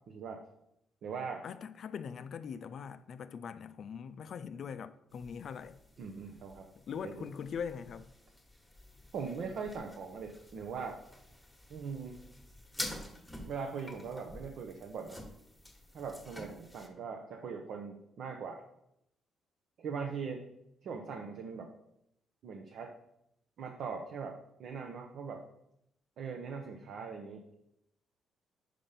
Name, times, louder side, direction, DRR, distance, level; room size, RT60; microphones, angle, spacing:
voice 1, 0.1-0.4 1.0-1.4 6.0-7.3 9.1-11.0 11.7-12.2 13.4-15.2 15.9-18.6 19.8-20.4 20.8-21.7 22.4-22.9 23.6-25.4 26.2-27.5, right 5 dB, 70° right, 0.8 m, -41 dB
voice 2, 1.4-5.8 6.8-8.1, left 7 dB, 60° left, 0.4 m, -42 dB
sound 1, 5.1-16.9, left 1 dB, 5° left, 1.3 m, -49 dB
5.2 x 5.1 x 5.7 m
cardioid pair, 90°, 0 cm